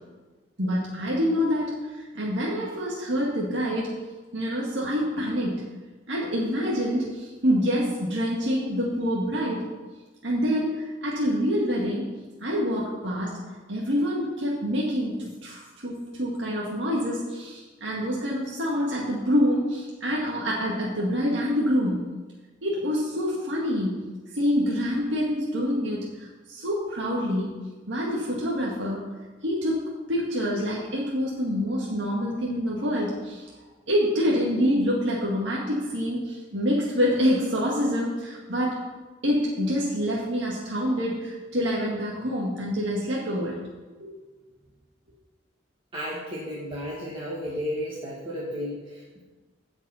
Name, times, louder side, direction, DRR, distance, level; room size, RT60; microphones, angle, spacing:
voice 1, 0.6-3.9 4.3-5.6 6.1-9.6 10.2-12.1 12.4-13.4 13.7-22.0 22.6-24.0 24.3-27.5 27.9-29.1 29.4-33.5 33.9-38.8 39.2-43.6 44.0-44.1, equal, 65° right, -5 dB, 2.0 m, -26 dB
voice 2, 45.9-49.2, equal, 25° right, -6 dB, 1.8 m, -33 dB
16.0 x 5.4 x 5.7 m, 1.3 s
head